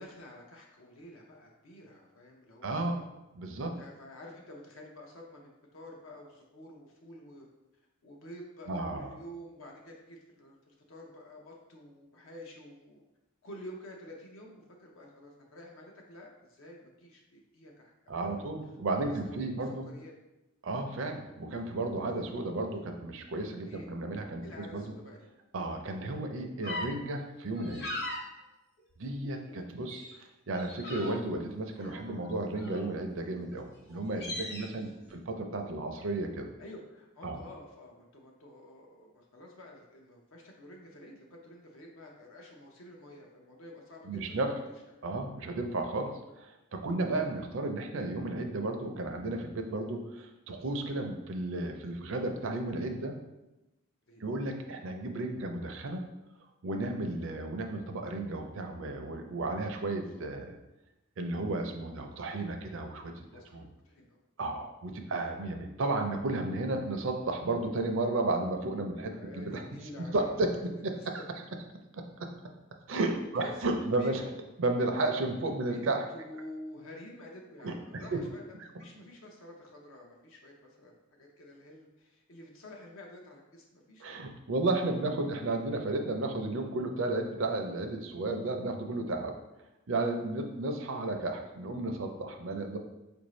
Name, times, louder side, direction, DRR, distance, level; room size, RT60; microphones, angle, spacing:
voice 1, 0.0-3.1 3.8-7.5 8.0-13.0 13.4-18.4 19.0-20.1 23.7-23.9 24.4-25.3 34.6-35.2 36.6-44.6 47.0-47.3 54.1-54.5 57.0-57.2 60.0-60.3 61.9-64.2 69.0-70.6 70.9-71.2 73.4-73.6 74.0-74.3 75.7-75.8 76.1-84.1, left 1 dB, 70° left, 0 dB, 0.6 m, -50 dB
voice 2, 2.6-3.0 3.3-3.7 8.7-9.1 18.1-19.9 20.6-24.8 25.5-27.9 29.0-30.1 30.5-36.5 37.2-37.4 44.1-44.5 45.0-53.2 54.2-56.1 56.6-60.6 61.2-63.3 63.5-63.6 64.4-69.6 70.0-71.1 71.9-72.3 72.9-74.3 74.6-76.0 77.6-78.2 84.0-89.4 89.9-92.8, right 2 dB, 65° right, 4 dB, 0.5 m, -33 dB
sound 1, 26.6-26.9 27.6-28.2 28.8-29.6 29.9-30.1 30.5-31.4 31.8-33.0 33.5-33.6 33.9-34.7, left 1 dB, 50° left, 0.9 m, -39 dB
4.6 x 2.6 x 3.1 m, 0.98 s
head